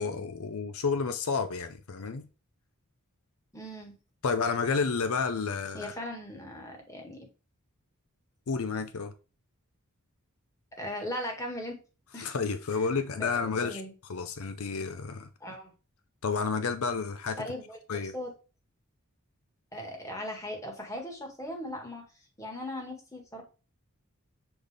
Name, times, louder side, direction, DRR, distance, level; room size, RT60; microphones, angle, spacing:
voice 1, 0.0-2.2 4.2-5.9 8.5-9.1 12.2-13.8 14.1-15.3 16.2-17.4 17.9-18.1, left 5 dB, 70° left, 0.6 m, -30 dB
voice 2, 3.5-3.9 5.7-7.3 10.8-11.8 12.1-12.3 12.8-12.9 13.2-13.9 15.4-15.7 17.4-18.3 19.7-22.0 22.4-23.4, left 1 dB, 15° left, 1.6 m, -38 dB
6.9 x 4.0 x 3.4 m
head